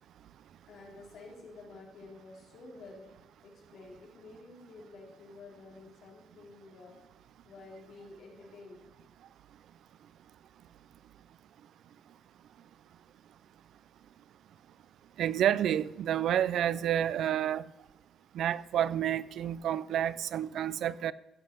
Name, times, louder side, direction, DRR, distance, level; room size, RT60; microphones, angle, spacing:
voice 1, 0.7-7.0 7.4-8.8, left 3 dB, 65° left, 3.8 m, -50 dB
voice 2, 15.2-17.7 18.3-21.1, right 10 dB, 75° right, 0.4 m, -29 dB
15.0 x 7.9 x 5.4 m
cardioid pair, 150°, 0 cm